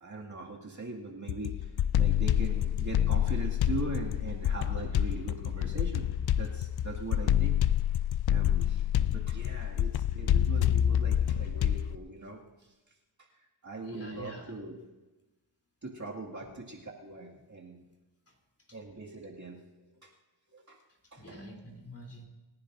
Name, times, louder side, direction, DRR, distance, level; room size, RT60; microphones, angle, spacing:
voice 1, 0.0-1.5 2.0-6.1 6.3-7.6 8.3-8.8 9.1-12.4 13.6-14.7 15.8-17.8 18.7-19.6 19.9-20.1 20.5-20.8 21.1-21.4, right 3 dB, 35° right, -2 dB, 2.2 m, -41 dB
sound 1, 1.3-12.0, left 10 dB, 55° left, 0.5 m, -27 dB
voice 2, 13.8-14.5 16.3-16.5 18.3-18.4 18.7-18.8 21.2-22.3, equal, 30° left, 1 dB, 3.3 m, -47 dB
27.0 x 10.5 x 2.6 m, 1.1 s
cardioid pair, 65°, 48 cm